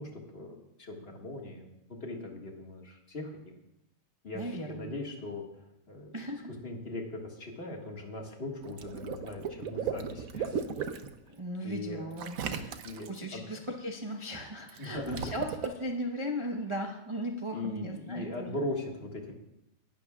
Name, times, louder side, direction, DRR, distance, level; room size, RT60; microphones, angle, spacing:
voice 1, 0.0-1.7 2.0-3.5 4.2-5.4 5.9-6.2 6.6-10.5 11.6-12.0 12.4-13.6 14.8-15.3 17.5-19.3, left 2 dB, 35° left, 0 dB, 1.8 m, -39 dB
voice 2, 4.3-4.9 6.1-6.5 11.3-12.8 13.1-18.6, equal, 25° right, 1 dB, 0.6 m, -37 dB
Water / Liquid, 8.6-11.1 12.2-13.2 14.7-15.7, right 7 dB, 60° right, 1.0 m, -36 dB
19.0 x 11.5 x 2.4 m, 0.85 s
omnidirectional pair, 1.9 m